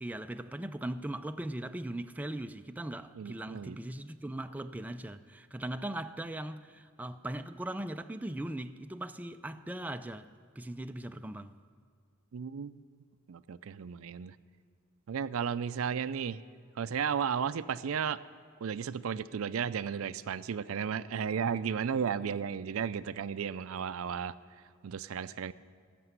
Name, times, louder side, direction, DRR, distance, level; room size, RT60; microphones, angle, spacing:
voice 1, 0.0-11.5, right 1 dB, 10° right, 0.3 m, -39 dB
voice 2, 3.2-3.8 12.3-12.8 13.3-14.3 15.1-16.4 16.8-18.2 18.6-24.3 24.8-25.5, right 7 dB, 80° right, 0.4 m, -34 dB
14.0 x 6.8 x 9.4 m
head